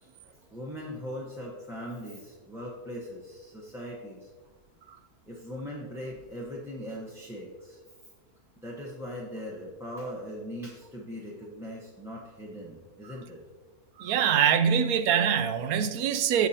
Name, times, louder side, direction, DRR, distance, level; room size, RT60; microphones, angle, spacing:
voice 1, 0.0-4.3 5.3-7.8 8.6-13.4, equal, ahead, -4 dB, 0.9 m, -40 dB
voice 2, 14.0-16.5, right 8 dB, 75° right, 10 dB, 1.0 m, -24 dB
15.5 x 5.2 x 2.8 m, 1.4 s
omnidirectional pair, 1.6 m